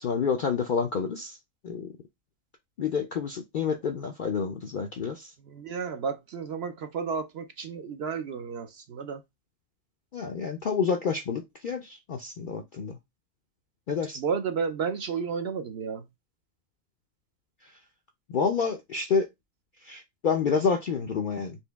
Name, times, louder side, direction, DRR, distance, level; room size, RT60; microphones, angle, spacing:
voice 1, 0.0-1.4 1.6-1.9 2.8-5.3 10.1-13.0 13.9-14.2 18.3-19.3 19.8-21.6, left 5 dB, 65° left, 0.5 m, -28 dB
voice 2, 5.4-9.2 14.2-16.0, right 6 dB, 60° right, 0.7 m, -32 dB
4.4 x 2.8 x 3.4 m
omnidirectional pair, 1.4 m